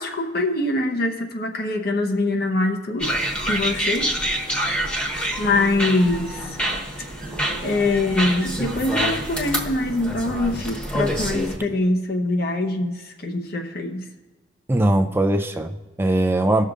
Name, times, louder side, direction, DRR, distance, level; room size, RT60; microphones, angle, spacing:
voice 1, 0.0-3.1 3.5-4.1 5.4-6.6 7.6-12.9 13.2-14.1, left 2 dB, 55° left, 3 dB, 0.9 m, -23 dB
sound 1, 3.0-11.6, right 1 dB, 5° left, 1.1 m, -26 dB
voice 2, 14.7-16.7, right 1 dB, 10° right, 5 dB, 0.4 m, -20 dB
19.5 x 6.5 x 2.5 m, 1.2 s
head